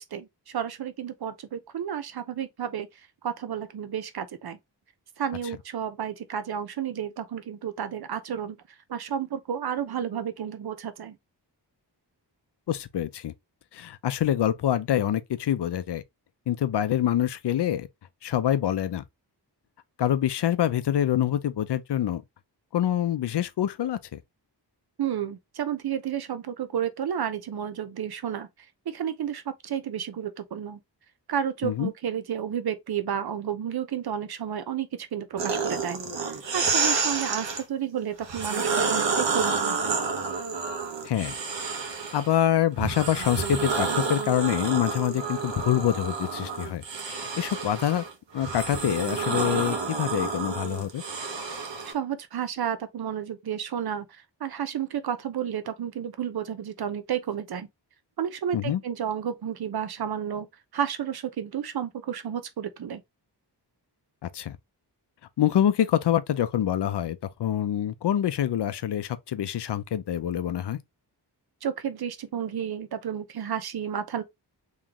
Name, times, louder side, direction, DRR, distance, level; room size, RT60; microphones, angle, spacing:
voice 1, 0.0-2.9 3.2-4.6 5.2-8.6 8.9-11.2 25.0-28.5 28.9-30.8 31.3-36.0 36.5-40.0 51.8-57.7 58.2-60.5 60.7-63.0 71.6-74.2, right 9 dB, 60° right, 0.7 m, -31 dB
voice 2, 12.7-13.3 13.7-16.0 16.5-17.9 18.2-19.0 20.0-22.2 22.7-24.2 31.6-31.9 41.1-41.3 42.1-48.0 48.3-51.0 58.5-58.8 64.3-64.6 65.4-70.8, left 11 dB, 70° left, 0.6 m, -26 dB
sound 1, 35.4-37.6 38.2-42.3 42.8-51.9, right 4 dB, 90° right, 1.1 m, -29 dB
3.8 x 3.1 x 2.9 m
wide cardioid pair, 160°, 42 cm